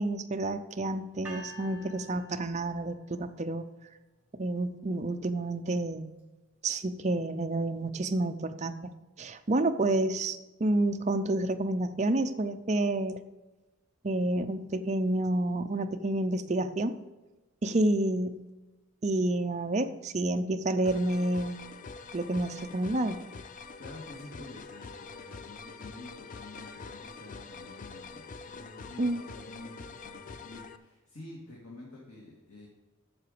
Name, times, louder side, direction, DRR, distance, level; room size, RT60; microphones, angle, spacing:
voice 1, 0.0-3.6 4.3-6.1 6.6-8.9 9.2-13.2 14.0-16.9 17.6-18.4 19.0-21.6 22.1-23.2 29.0-29.2, right 2 dB, 30° right, 7 dB, 0.5 m, -29 dB
sound 1, 1.2-3.3, right 1 dB, 10° right, 1.2 m, -48 dB
sound 2, 20.8-30.8, left 4 dB, 35° left, 0.4 m, -45 dB
voice 2, 23.8-32.7, left 2 dB, 85° left, -4 dB, 2.1 m, -48 dB
7.8 x 6.8 x 6.7 m, 1.1 s
head